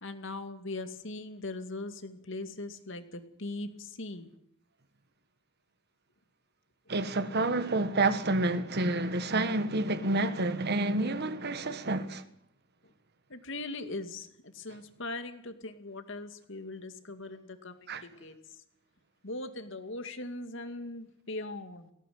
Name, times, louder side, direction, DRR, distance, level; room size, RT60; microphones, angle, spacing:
voice 1, 0.0-4.3 13.3-18.4 19.2-21.9, left 2 dB, 65° left, 2.3 m, -40 dB
voice 2, 6.9-12.2 17.9-18.0, right 2 dB, 55° right, 1.5 m, -29 dB
18.5 x 17.0 x 9.4 m
head